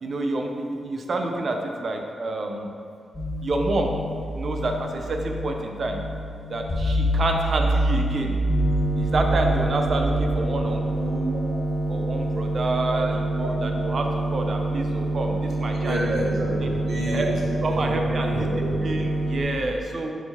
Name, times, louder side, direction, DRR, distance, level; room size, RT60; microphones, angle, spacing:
voice 1, 0.0-2.7 3.4-4.0 4.3-6.0 6.5-8.3 9.0-11.4 11.9-16.0 16.6-16.7 17.1-17.3 17.6-18.3 18.8-20.1, right 2 dB, 50° right, 3 dB, 0.7 m, -28 dB
sound 1, 3.1-10.3, equal, 25° left, 1.4 m, -27 dB
sound 2, 8.5-19.4, right 2 dB, 10° left, 1.1 m, -27 dB
voice 2, 15.8-17.3 17.7-18.9, right 1 dB, 70° right, -5 dB, 1.5 m, -30 dB
4.6 x 4.0 x 5.6 m, 2.3 s
cardioid pair, 90°, 0 cm